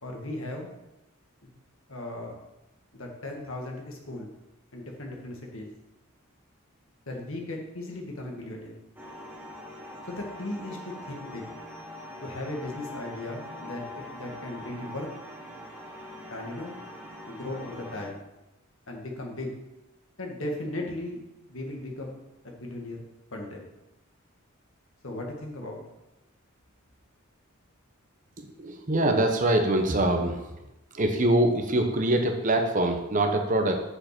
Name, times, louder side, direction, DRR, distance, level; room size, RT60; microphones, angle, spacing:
voice 1, 0.0-0.7 1.4-1.5 1.9-2.3 2.9-4.3 4.7-5.7 7.1-8.7 10.1-11.5 12.2-15.1 16.3-16.7 17.3-18.2 18.9-19.6 20.2-21.2 21.5-23.0 23.3-23.7 25.0-25.8, left 1 dB, 65° left, 0 dB, 1.7 m, -37 dB
sound 1, 9.0-18.1, left 1 dB, 10° right, 1.3 m, -43 dB
voice 2, 28.6-30.5 30.9-33.8, right 1 dB, 35° right, 5 dB, 0.8 m, -24 dB
6.5 x 5.2 x 5.9 m, 0.94 s
head